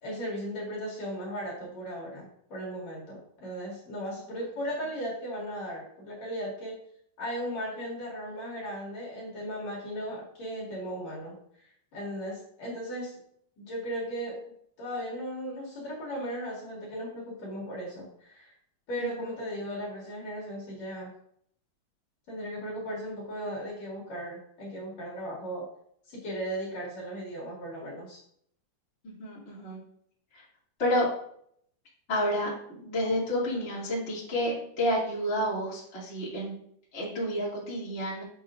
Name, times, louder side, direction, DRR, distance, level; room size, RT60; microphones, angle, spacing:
voice 1, 0.0-6.7 7.2-11.3 11.9-13.2 13.6-14.4 14.8-18.5 18.9-21.1 22.3-25.6 26.1-28.2, equal, 55° left, -5 dB, 3.0 m, -36 dB
voice 2, 19.0-19.4 29.0-29.8 30.3-30.4 30.8-31.1 32.1-36.6 36.9-38.2, equal, 20° left, -7 dB, 2.2 m, -30 dB
7.4 x 7.2 x 2.5 m, 0.67 s
omnidirectional pair, 4.1 m